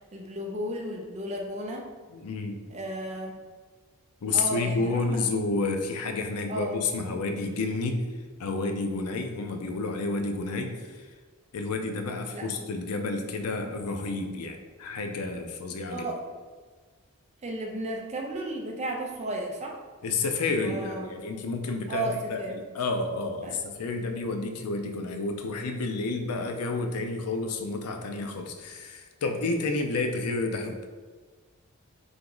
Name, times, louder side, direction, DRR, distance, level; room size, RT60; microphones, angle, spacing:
voice 1, 0.1-1.9 2.7-3.4 4.3-5.2 6.5-6.8 12.3-12.6 15.9-16.2 17.4-19.8 20.4-21.1 21.9-22.6 23.4-23.6, right 1 dB, 30° right, 0 dB, 0.5 m, -34 dB
voice 2, 2.1-2.6 4.2-8.1 8.4-11.1 11.5-16.1 20.0-30.8, left 3 dB, 90° left, 5 dB, 0.5 m, -30 dB
3.5 x 2.9 x 3.8 m, 1.4 s
head